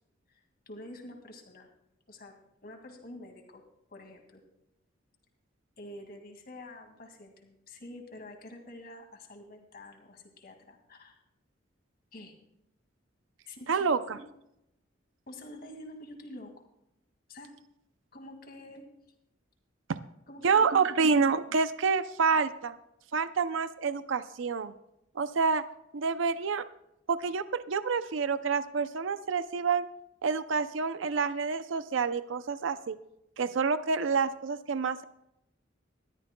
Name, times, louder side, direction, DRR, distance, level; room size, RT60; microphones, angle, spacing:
voice 1, 0.3-1.7 2.1-2.4 2.6-3.6 3.9-4.4 5.8-11.2 12.1-12.4 13.5-14.2 15.3-16.7 17.3-17.5 18.1-18.9 20.3-21.2, left 1 dB, 50° left, 3 dB, 2.2 m, -47 dB
voice 2, 13.7-14.2 20.4-22.7 23.1-24.7 25.2-25.6 25.9-26.6 27.1-29.9 30.2-33.0 33.4-35.0, right 5 dB, 75° right, 13 dB, 0.5 m, -28 dB
20.5 x 13.0 x 2.2 m, 0.82 s
head